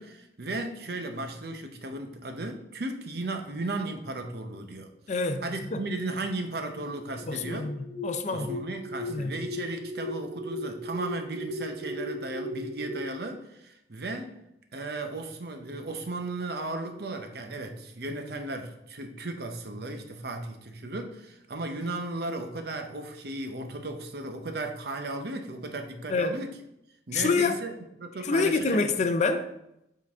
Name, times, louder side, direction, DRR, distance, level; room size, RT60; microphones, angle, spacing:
voice 1, 0.0-4.9 5.4-7.8 8.3-14.4 14.7-26.5 27.1-27.7 28.0-28.8, right 2 dB, 60° right, 0.8 m, -35 dB
voice 2, 5.1-5.4 5.7-5.8 7.3-7.8 8.0-8.6 9.1-9.3 26.1-26.4 27.1-27.5 28.2-29.5, left 4 dB, 40° left, 0.5 m, -26 dB
sound 1, 7.2-13.1, equal, 20° right, 0.9 m, -37 dB
7.4 x 3.9 x 3.5 m
head